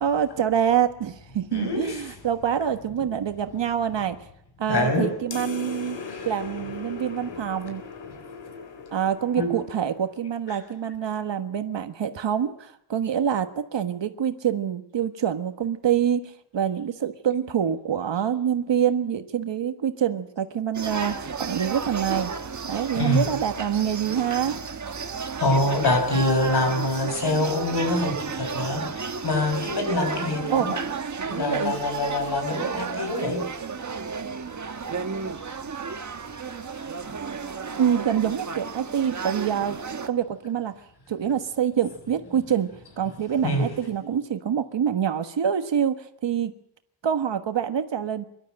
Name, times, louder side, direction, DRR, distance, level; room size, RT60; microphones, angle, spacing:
voice 1, 0.0-4.2 4.6-7.8 8.9-22.3 22.6-24.5 30.5-30.8 31.2-31.7 37.8-39.8 40.1-40.7 41.1-42.7 43.0-46.5 47.0-48.2, right 8 dB, 80° right, 1.5 m, -26 dB
voice 2, 1.5-2.2 4.7-5.2 6.0-6.3 9.4-9.6 10.5-10.6 23.0-23.3 25.4-30.8 31.3-33.6 43.4-43.8, left 2 dB, 65° left, 5.6 m, -25 dB
sound 1, 5.3-10.2, left 5 dB, 85° left, 2.6 m, -39 dB
sound 2, 20.7-40.1, right 5 dB, 40° right, 1.5 m, -33 dB
24.0 x 12.5 x 8.9 m
wide cardioid pair, 150°, 43 cm